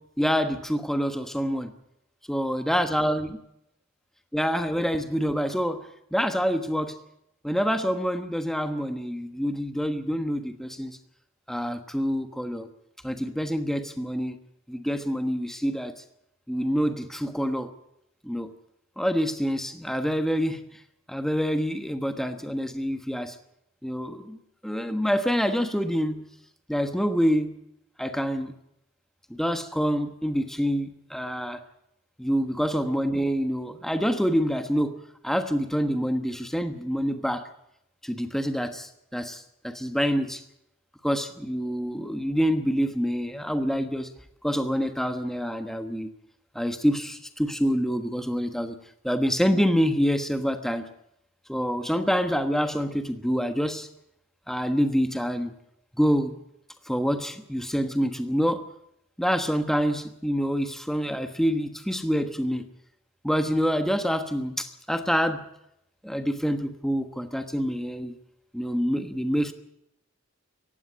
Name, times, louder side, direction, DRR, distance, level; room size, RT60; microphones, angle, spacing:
voice 1, 0.2-1.7 2.3-3.3 4.3-7.0 7.4-11.0 11.5-12.7 13.0-14.4 14.7-16.0 16.5-17.7 18.2-18.5 19.0-20.8 21.1-23.4 23.8-26.3 26.7-27.6 28.0-28.5 29.3-31.6 32.2-37.5 38.0-40.4 41.0-44.1 44.4-46.1 46.5-48.8 49.0-50.9 51.5-53.9 54.5-55.5 56.0-56.3 56.9-58.6 59.2-62.7 63.2-65.5 66.0-68.2 68.5-69.5, equal, ahead, 8 dB, 1.2 m, -26 dB
18.5 x 15.5 x 9.6 m, 0.78 s
head